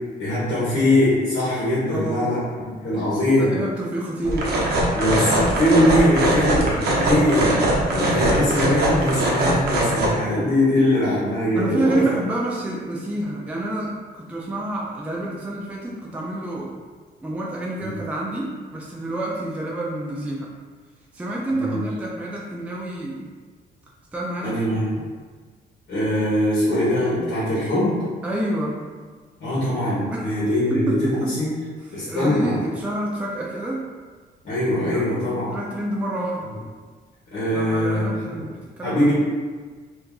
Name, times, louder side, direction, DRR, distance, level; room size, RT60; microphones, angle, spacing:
voice 1, 0.2-3.5 4.9-12.1 17.8-17.9 21.5-21.8 24.4-24.8 25.9-28.0 29.4-31.5 31.9-32.6 34.4-35.5 37.3-38.3 38.8-39.1, left 1 dB, 55° left, -9 dB, 1.2 m, -21 dB
voice 2, 1.9-2.4 3.4-4.7 11.5-16.7 17.2-20.5 21.1-23.3 24.1-24.6 25.0-25.1 28.2-28.8 30.1-30.4 30.7-31.4 31.8-33.8 34.9-35.1 35.5-36.5 37.5-39.1, right 1 dB, 5° right, -3 dB, 0.4 m, -28 dB
sound 1, 4.2-10.1, right 1 dB, 65° right, 0.8 m, -21 dB
2.7 x 2.6 x 3.6 m, 1.5 s
cardioid pair, 130°, 18 cm